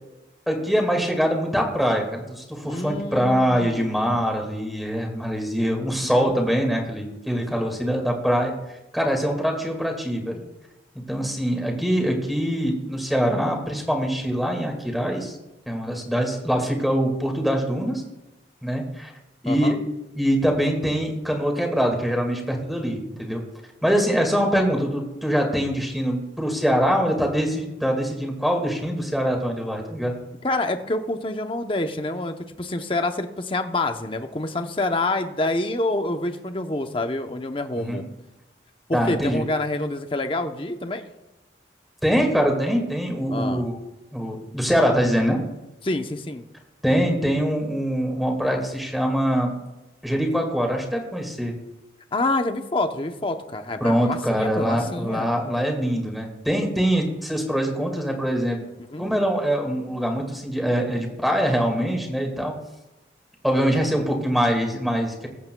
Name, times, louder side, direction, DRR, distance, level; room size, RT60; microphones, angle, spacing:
voice 1, 0.5-8.5 8.9-10.4 11.1-15.4 15.7-18.0 18.6-19.1 19.4-19.8 20.1-23.4 23.8-30.1 37.8-38.0 38.9-39.4 42.0-43.8 44.1-45.4 46.8-49.6 50.0-51.5 53.8-58.6 59.0-62.5 63.4-65.3, equal, ahead, 1 dB, 1.9 m, -23 dB
voice 2, 2.7-4.2 6.0-6.4 19.5-19.8 30.4-38.0 38.9-41.0 43.3-43.6 45.8-46.4 52.1-55.3 58.9-59.1, left 2 dB, 30° left, 7 dB, 0.8 m, -27 dB
21.0 x 8.4 x 2.3 m, 1.0 s
head